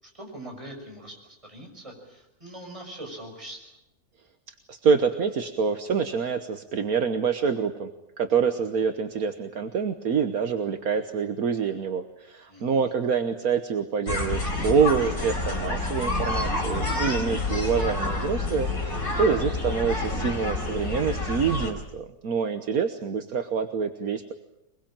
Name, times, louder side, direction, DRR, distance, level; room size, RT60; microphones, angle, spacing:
voice 1, 0.0-3.7 12.5-12.9, right 1 dB, 20° right, 1 dB, 6.3 m, -42 dB
voice 2, 4.7-7.9 8.2-24.3, right 6 dB, 70° right, 7 dB, 1.6 m, -26 dB
sound 1, 14.1-21.7, left 2 dB, 60° left, 4.7 m, -28 dB
23.0 x 22.5 x 8.9 m, 0.83 s
omnidirectional pair, 1.6 m